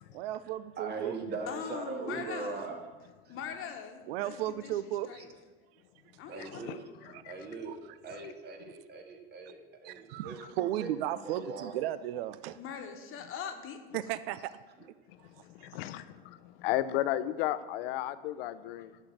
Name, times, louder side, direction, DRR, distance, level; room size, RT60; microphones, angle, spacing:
voice 1, 0.1-1.2 4.1-5.2 6.3-6.6 7.1-7.2 7.7-7.8 9.8-12.6 13.9-14.5, right 13 dB, 80° right, 15 dB, 0.5 m, -35 dB
voice 2, 0.8-2.8 3.3-3.4 6.3-6.9 7.3-7.7 8.0-10.9 11.2-11.7, right 3 dB, 35° right, 3 dB, 1.8 m, -40 dB
voice 3, 1.5-2.7 3.3-5.3 6.2-6.6 12.5-13.8 15.8-15.9, left 7 dB, 45° left, 5 dB, 1.2 m, -42 dB
voice 4, 6.4-6.8 7.2-7.4 10.4-10.5 15.1-19.0, left 13 dB, 80° left, 14 dB, 0.6 m, -34 dB
11.5 x 4.4 x 7.2 m, 1.3 s
supercardioid pair, 100°, 29 cm